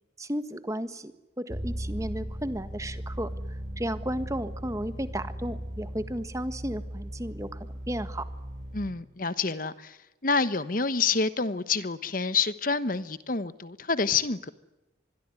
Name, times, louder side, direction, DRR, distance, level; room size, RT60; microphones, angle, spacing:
voice 1, 0.2-1.1 1.4-8.3, right 1 dB, 15° right, 11 dB, 1.6 m, -34 dB
sound 1, 1.5-8.9, equal, 40° right, 5.6 m, -37 dB
voice 2, 8.7-10.0 10.2-14.5, left 4 dB, 45° left, 14 dB, 1.1 m, -28 dB
26.5 x 21.5 x 9.7 m, 0.97 s
head